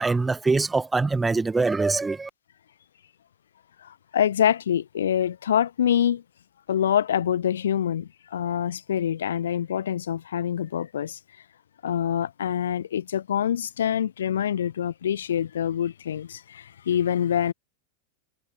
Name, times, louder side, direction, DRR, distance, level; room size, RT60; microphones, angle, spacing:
voice 1, 0.0-2.3, right 3 dB, 10° right, 1.3 m, -23 dB
voice 2, 3.8-6.2 6.7-11.2 11.8-17.5, left 9 dB, 65° left, 1.0 m, -25 dB
figure-of-eight pair, 90°, 0 cm